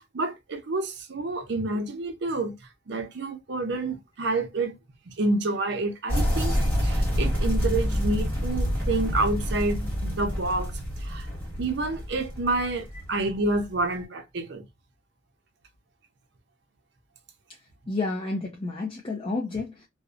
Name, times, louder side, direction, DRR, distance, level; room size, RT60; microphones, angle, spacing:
voice 1, 0.1-2.6 2.9-4.7 5.1-10.7 11.0-11.3 11.6-14.6, right 2 dB, 60° right, 0.6 m, -28 dB
sound 1, 6.1-13.8, equal, 10° left, 1.2 m, -27 dB
voice 2, 17.9-19.9, left 3 dB, 30° left, 0.4 m, -30 dB
2.7 x 2.0 x 2.4 m
head